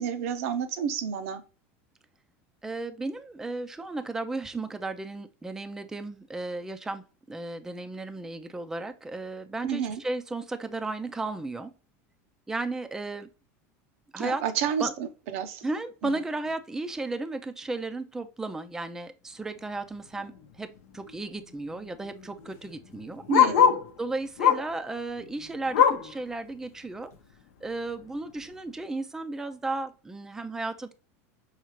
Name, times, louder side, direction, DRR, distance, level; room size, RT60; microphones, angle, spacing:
voice 1, 0.0-1.4 9.6-10.0 14.2-15.6 16.0-16.2 23.3-23.7, right 7 dB, 75° right, 9 dB, 0.6 m, -30 dB
voice 2, 2.6-11.7 12.5-13.3 14.1-14.4 14.8-14.9 15.6-20.7 20.9-23.2 24.0-27.1 27.6-30.9, right 2 dB, 5° right, 9 dB, 0.3 m, -34 dB
Bark, 20.2-20.4 20.8-20.9 21.1-23.9 24.4-24.8 25.2-26.2 26.6-26.7 27.1-27.2 27.9-28.0, left 8 dB, 90° left, 0.7 m, -24 dB
5.6 x 2.4 x 3.0 m, 0.34 s
supercardioid pair, 140°, 8 cm